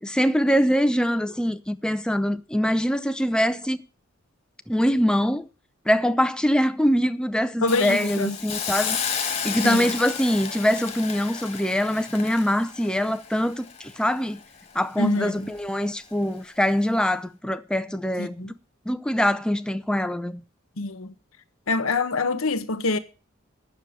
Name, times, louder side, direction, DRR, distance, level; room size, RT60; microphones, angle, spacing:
voice 1, 0.0-3.8 4.7-5.5 5.9-9.0 9.4-14.4 14.7-18.5 18.9-20.4, equal, 5° left, 0.6 m, -23 dB
voice 2, 7.6-8.4 9.6-9.9 15.0-15.5 18.2-18.5 20.8-21.1 21.7-23.0, left 3 dB, 85° left, 1.2 m, -25 dB
Hiss, 7.7-14.7 15.1-15.3, left 7 dB, 30° left, 1.8 m, -32 dB
9.5 x 6.9 x 8.8 m
head